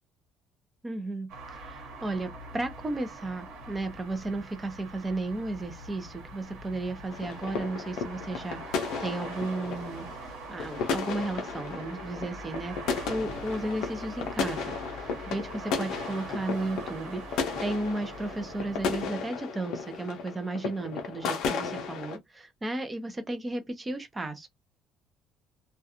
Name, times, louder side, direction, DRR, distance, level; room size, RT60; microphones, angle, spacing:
voice 1, 0.8-12.8 13.1-24.5, right 2 dB, 15° right, 0.5 m, -34 dB
sound 1, 1.3-19.1, right 2 dB, 85° right, 1.1 m, -43 dB
sound 2, 7.1-22.2, left 5 dB, 70° left, 0.5 m, -34 dB
2.3 x 2.2 x 2.8 m
cardioid pair, 140°, 0 cm